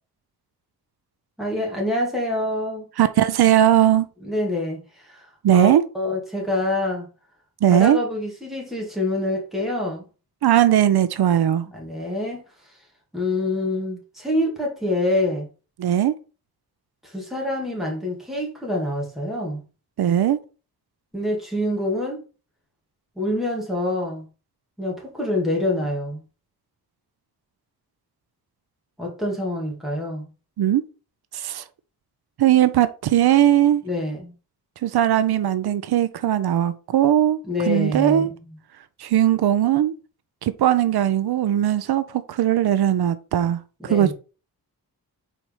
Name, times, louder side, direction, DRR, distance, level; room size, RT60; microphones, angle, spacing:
voice 1, 1.4-2.9 4.2-5.7 5.9-7.1 7.7-10.1 11.7-12.4 13.1-15.5 17.0-19.6 21.1-22.2 23.2-24.3 24.8-26.2 29.0-30.3 33.8-34.3 37.5-38.6 43.8-44.1, left 1 dB, ahead, 2.3 m, -26 dB
voice 2, 3.0-4.1 5.4-5.8 7.6-8.0 10.4-11.7 15.8-16.1 20.0-20.4 30.6-30.8 31.3-31.6 32.4-33.8 34.8-37.4 37.7-38.3 39.0-40.0 40.4-44.1, right 11 dB, 85° right, 0.6 m, -19 dB
4.6 x 4.3 x 5.4 m
wide cardioid pair, 160°, 37 cm